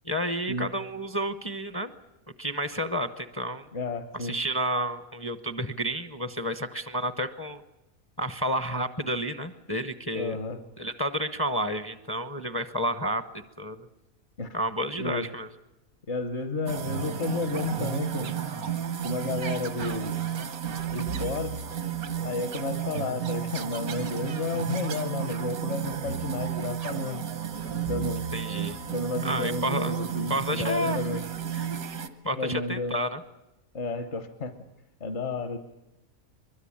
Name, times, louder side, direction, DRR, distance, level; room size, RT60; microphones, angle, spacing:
voice 1, 0.0-1.9 2.4-3.7 4.1-7.6 8.2-10.4 10.8-13.9 14.5-15.5 28.3-28.8 29.2-30.0 30.3-31.1 31.5-31.7 32.2-33.2, equal, 20° left, 9 dB, 0.7 m, -30 dB
voice 2, 3.7-4.4 10.1-10.6 14.4-14.6 15.0-15.3 16.1-18.4 19.0-20.2 20.9-21.6 22.2-27.2 27.9-28.3 28.9-31.2 32.4-33.0 33.7-34.6 35.0-35.6, left 3 dB, 55° left, 8 dB, 1.5 m, -32 dB
sound 1, 16.7-32.1, right 8 dB, 90° right, 1.7 m, -32 dB
23.5 x 22.5 x 8.7 m, 0.99 s
omnidirectional pair, 1.5 m